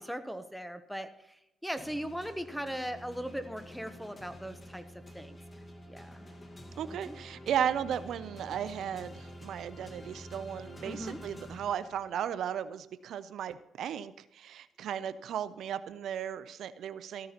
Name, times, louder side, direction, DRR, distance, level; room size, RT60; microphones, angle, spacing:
voice 1, 0.0-4.8 5.1-5.4 5.9-6.3 6.9-7.2 10.8-11.2, equal, ahead, 11 dB, 0.8 m, -39 dB
sound 1, 1.8-12.4, equal, 25° left, 1.6 m, -48 dB
voice 2, 6.8-17.3, right 9 dB, 70° right, 14 dB, 0.4 m, -35 dB
14.0 x 14.0 x 2.9 m, 0.88 s
cardioid pair, 90°, 0 cm